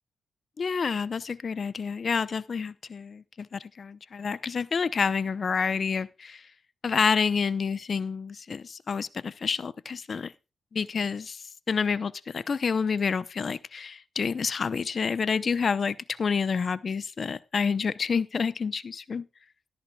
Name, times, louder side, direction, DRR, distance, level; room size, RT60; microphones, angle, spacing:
voice 1, 0.6-6.5 6.8-10.3 10.7-19.3, left 5 dB, 50° left, 0.7 m, -28 dB
13.5 x 13.0 x 2.3 m
cardioid pair, 65°, 0 cm